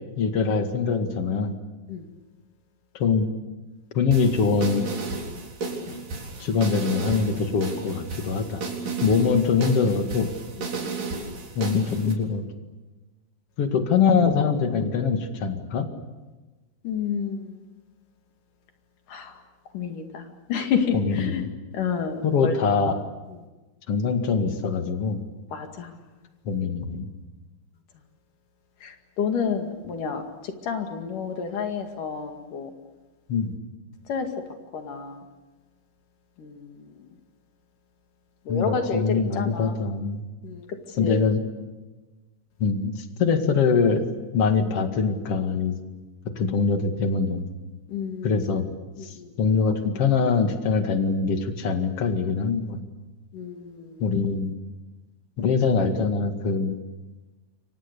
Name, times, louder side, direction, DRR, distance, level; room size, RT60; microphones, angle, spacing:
voice 1, 0.2-1.5 3.0-3.3 3.9-4.9 6.4-8.6 9.0-10.3 11.6-12.4 13.6-15.9 20.9-21.5 22.2-23.0 23.9-25.2 26.5-27.1 33.3-33.5 38.5-40.2 41.0-41.4 42.6-44.0 44.3-45.8 46.4-47.5 48.2-48.7 49.0-52.8 54.0-54.5 55.4-56.8, left 5 dB, 45° left, 6 dB, 2.8 m, -23 dB
sound 1, 4.1-12.1, right 3 dB, 65° right, 5.7 m, -33 dB
voice 2, 16.8-17.6 19.1-19.4 19.7-21.4 21.7-22.6 25.5-26.0 28.8-32.7 34.1-34.3 34.7-35.2 36.4-36.9 38.5-39.8 40.4-41.3 47.9-48.4 49.0-49.3 53.3-54.0, left 6 dB, 70° left, 5 dB, 3.7 m, -30 dB
29.0 x 25.0 x 6.9 m, 1.2 s
omnidirectional pair, 4.0 m